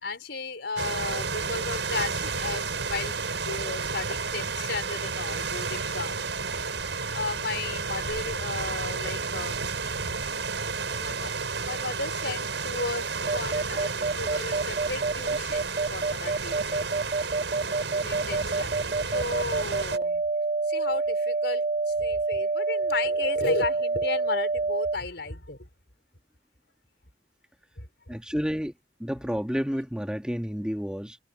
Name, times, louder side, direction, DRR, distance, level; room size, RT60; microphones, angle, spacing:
voice 1, 0.0-6.2 6.7-6.8 7.1-10.2 10.8-16.9 18.0-20.2 20.6-25.7 27.8-27.9, left 3 dB, 70° left, 5.1 m, -34 dB
sound 1, 0.8-20.0, right 4 dB, 85° right, 6.6 m, -31 dB
sound 2, 13.3-25.0, right 3 dB, 45° right, 1.5 m, -27 dB
voice 2, 28.1-28.7 29.0-31.2, equal, 5° right, 1.8 m, -30 dB
head